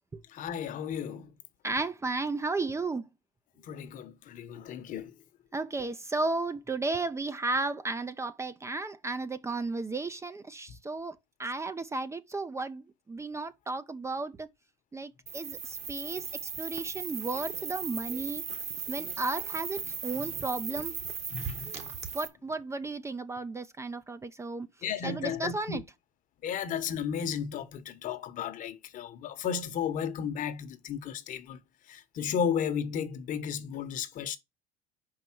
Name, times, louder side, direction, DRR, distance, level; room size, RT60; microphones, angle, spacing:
voice 1, 0.3-1.3 3.6-5.1 18.9-19.0 20.2-20.3 21.3-21.9 24.8-25.8 26.4-31.6 31.9-34.4, left 7 dB, 50° left, 1.1 m, -34 dB
voice 2, 1.6-3.0 5.5-11.1 11.4-14.5 14.9-18.4 18.9-20.9 22.1-24.7 25.0-25.8, right 3 dB, 15° right, 0.6 m, -34 dB
sound 1, 15.3-22.3, right 6 dB, 40° right, 1.6 m, -37 dB
5.2 x 4.8 x 5.9 m
supercardioid pair, 100°, 17 cm